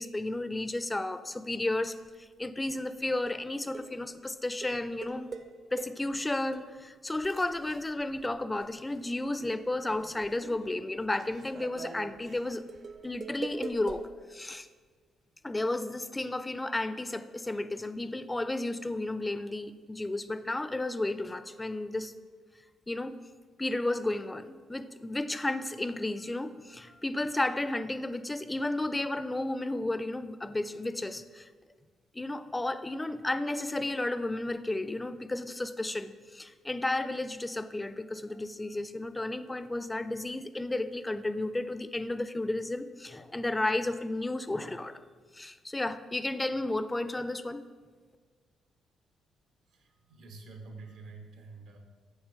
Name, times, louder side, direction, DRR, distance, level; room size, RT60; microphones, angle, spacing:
voice 1, 0.0-5.3 5.7-12.7 13.0-14.7 15.4-22.1 22.9-23.2 23.6-31.5 32.1-45.0 45.3-47.6, left 2 dB, 15° left, 12 dB, 0.3 m, -33 dB
sound 1, 1.9-2.2 2.7-2.8 3.3-3.5 3.7-4.0 4.6-6.2 6.5-6.6 7.1-9.0 9.3-14.0, right 4 dB, 45° right, 0.5 m, -44 dB
voice 2, 49.7-51.8, right 3 dB, 85° right, 4 dB, 1.0 m, -48 dB
7.9 x 3.2 x 5.5 m, 1.5 s
cardioid pair, 90°, 0 cm